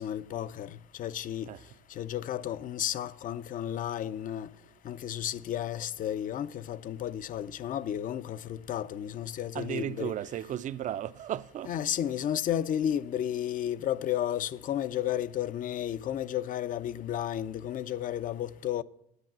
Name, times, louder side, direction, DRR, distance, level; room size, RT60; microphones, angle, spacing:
voice 1, 0.0-1.5 1.9-4.5 4.8-10.1 11.7-18.8, left 10 dB, 55° left, 0.6 m, -33 dB
voice 2, 9.5-11.8, right 11 dB, 45° right, 0.5 m, -35 dB
11.0 x 8.2 x 7.4 m
cardioid pair, 110°, 17 cm